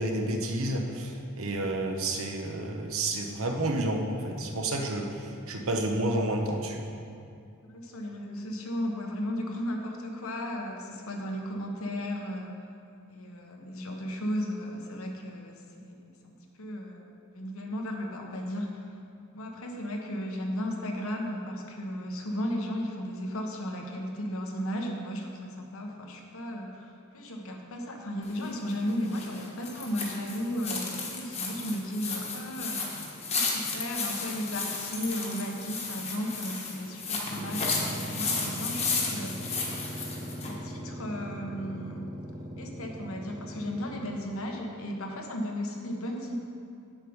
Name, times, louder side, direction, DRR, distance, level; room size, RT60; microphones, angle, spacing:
voice 1, 0.0-6.8, right 1 dB, 65° right, 2 dB, 1.0 m, -30 dB
voice 2, 7.6-12.5 13.1-17.1 17.3-18.8 19.3-32.9 33.3-39.4 40.0-40.2 40.4-42.1 42.6-46.4, equal, 65° left, 1 dB, 1.2 m, -35 dB
sound 1, 28.2-40.5, left 4 dB, 30° left, 1.3 m, -34 dB
sound 2, 37.1-44.5, equal, 35° right, 0.9 m, -40 dB
8.4 x 7.5 x 5.2 m, 2.4 s
head